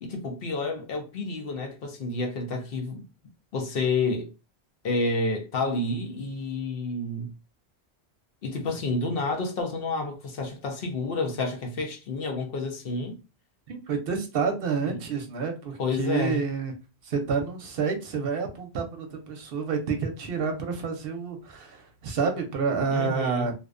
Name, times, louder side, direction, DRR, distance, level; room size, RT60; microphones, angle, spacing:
voice 1, 0.0-3.0 3.5-4.3 4.8-7.3 8.4-13.2 14.8-15.0 15.8-16.4 22.9-23.5, left 3 dB, 65° left, 0.8 m, -29 dB
voice 2, 13.7-16.7 17.0-23.5, right 5 dB, 65° right, 0.7 m, -29 dB
2.5 x 2.1 x 2.3 m
omnidirectional pair, 1.1 m